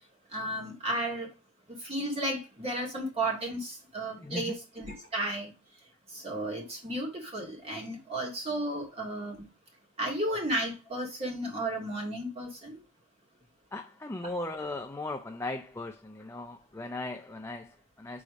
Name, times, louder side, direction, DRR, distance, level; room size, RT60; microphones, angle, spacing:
voice 1, 0.3-1.3 1.8-5.5 6.1-9.4 10.0-12.8, right 1 dB, 30° right, 2.3 m, -33 dB
voice 2, 4.2-4.5 13.7-18.2, left 2 dB, 10° left, 0.4 m, -38 dB
4.9 x 4.0 x 5.1 m
head